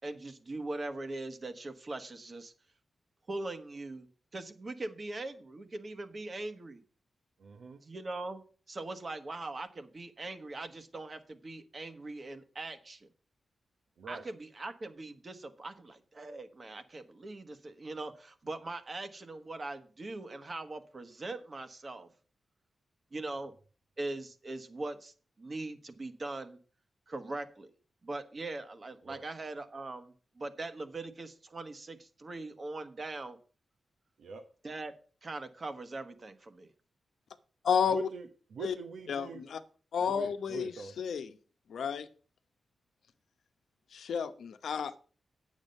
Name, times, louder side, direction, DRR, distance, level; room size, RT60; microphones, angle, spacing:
voice 1, 0.0-2.5 3.3-4.1 4.3-6.8 7.8-8.4 8.7-13.1 14.1-22.1 23.1-23.5 24.0-26.6 27.1-27.7 28.0-33.4 34.6-34.9 35.2-36.7, right 2 dB, 40° right, 1.3 m, -41 dB
voice 2, 7.4-7.8 14.0-14.2 29.1-29.2 34.2-34.4 37.9-39.4 40.1-40.9, right 5 dB, 80° right, 0.9 m, -43 dB
voice 3, 37.6-38.1 38.6-38.7 39.1-39.6 39.9-41.3 41.7-42.1 43.9-45.0, left 7 dB, 85° left, 0.9 m, -31 dB
9.0 x 7.4 x 5.4 m
wide cardioid pair, 95°, 0 cm